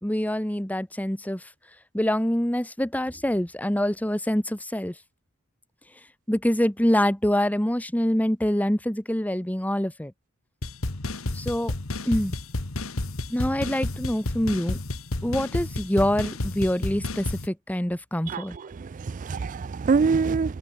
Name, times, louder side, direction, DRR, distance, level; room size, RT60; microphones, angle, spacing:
voice 1, 0.0-1.4 1.9-4.9 6.3-10.1 11.3-11.7 12.0-12.4 13.3-14.8 15.2-18.6, equal, 5° left, 1.4 m, -25 dB
sound 1, 10.6-17.5, left 2 dB, 75° left, 1.8 m, -31 dB
voice 2, 18.3-20.6, right 5 dB, 40° right, 0.3 m, -25 dB
head